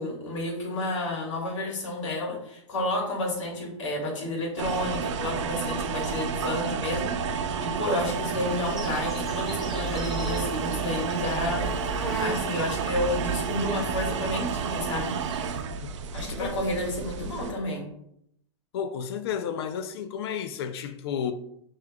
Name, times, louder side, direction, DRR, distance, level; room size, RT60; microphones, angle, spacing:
voice 1, 0.0-15.1 16.1-17.8, left 1 dB, 85° left, 1.6 m, -31 dB
sound 1, 4.6-17.5, right 6 dB, 80° right, 0.4 m, -31 dB
Insect, 8.0-15.6, right 2 dB, ahead, 1.2 m, -40 dB
sound 2, 9.3-14.9, right 4 dB, 25° right, 0.5 m, -37 dB
voice 2, 18.7-21.3, left 8 dB, 55° left, 0.4 m, -32 dB
5.8 x 3.1 x 2.3 m
hypercardioid pair, 145°, 15 cm